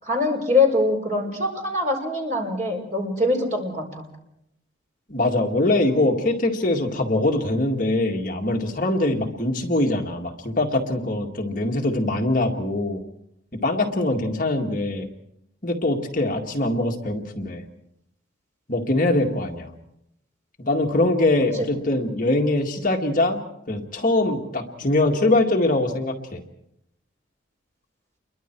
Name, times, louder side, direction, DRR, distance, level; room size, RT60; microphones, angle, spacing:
voice 1, 0.0-4.1 21.5-21.7, left 2 dB, 40° right, 1 dB, 5.0 m, -23 dB
voice 2, 5.1-13.0 13.5-15.1 15.6-17.6 18.7-19.7 20.6-23.4 23.7-26.4, left 2 dB, 40° left, 1 dB, 1.9 m, -23 dB
29.0 x 22.5 x 4.6 m, 0.78 s
head